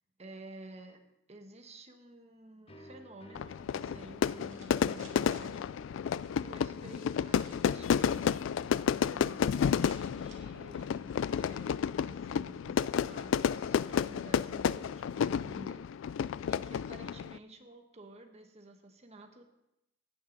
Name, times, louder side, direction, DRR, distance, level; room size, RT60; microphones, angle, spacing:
voice 1, 0.2-1.0 1.3-11.1 11.3-11.8 12.1-19.4, right 2 dB, 35° right, 5 dB, 1.3 m, -52 dB
sound 1, 2.7-10.1, equal, 30° left, 0.8 m, -55 dB
Fire / Fireworks, 3.4-17.4, left 7 dB, 70° left, 0.3 m, -31 dB
sound 2, 3.7-5.5 6.1-6.6 7.3-8.3 8.7-9.1 9.4-9.5 9.6-11.8, right 6 dB, 80° right, 2.0 m, -60 dB
16.5 x 9.1 x 4.0 m, 0.86 s
head